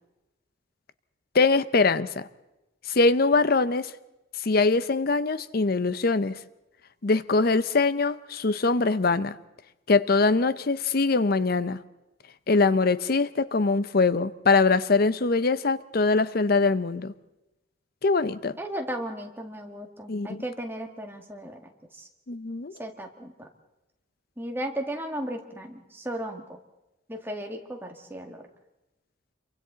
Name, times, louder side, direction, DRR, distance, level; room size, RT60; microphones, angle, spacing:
voice 1, 1.3-2.3 2.9-3.9 4.4-6.4 7.0-9.4 9.9-11.8 12.5-17.1 18.0-18.6 20.1-20.4 22.3-22.7, left 3 dB, 50° left, 15 dB, 0.6 m, -23 dB
voice 2, 18.6-21.6 21.9-22.1 22.8-23.5 24.4-26.4 27.1-28.5, right 1 dB, 10° right, 2 dB, 1.9 m, -35 dB
27.5 x 24.0 x 4.0 m, 0.97 s
head